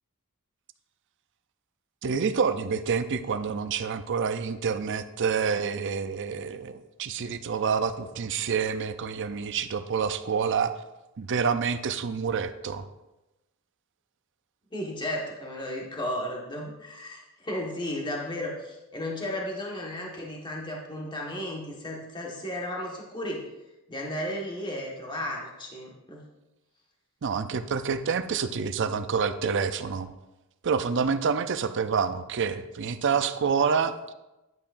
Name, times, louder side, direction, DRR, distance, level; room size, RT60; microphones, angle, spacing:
voice 1, 2.0-10.7 11.2-12.9 27.2-30.1 30.6-34.1, right 6 dB, 55° right, 11 dB, 0.5 m, -27 dB
voice 2, 14.7-23.4 23.9-26.2, left 1 dB, 20° left, -2 dB, 1.5 m, -34 dB
11.0 x 8.5 x 2.6 m, 0.99 s
head